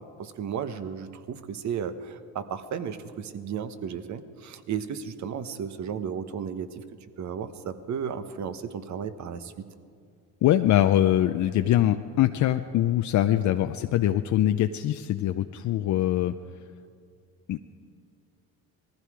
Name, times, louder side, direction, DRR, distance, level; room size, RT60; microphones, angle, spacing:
voice 1, 0.0-6.8 7.2-9.5, right 7 dB, 50° right, 11 dB, 1.1 m, -34 dB
voice 2, 10.4-16.3 17.5-17.6, left 12 dB, 50° left, 8 dB, 0.6 m, -23 dB
19.5 x 15.0 x 4.8 m, 2.3 s
supercardioid pair, 95°, 36 cm